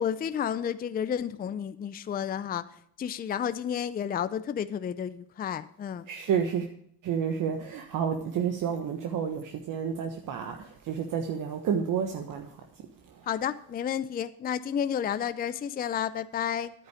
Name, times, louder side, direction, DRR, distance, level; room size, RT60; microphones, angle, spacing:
voice 1, 0.0-6.1 13.3-16.7, left 8 dB, 25° left, 13 dB, 0.5 m, -31 dB
voice 2, 6.1-6.6 7.0-12.5, right 7 dB, 55° right, 4 dB, 1.3 m, -30 dB
10.0 x 9.3 x 4.9 m, 0.67 s
cardioid pair, 105°, 38 cm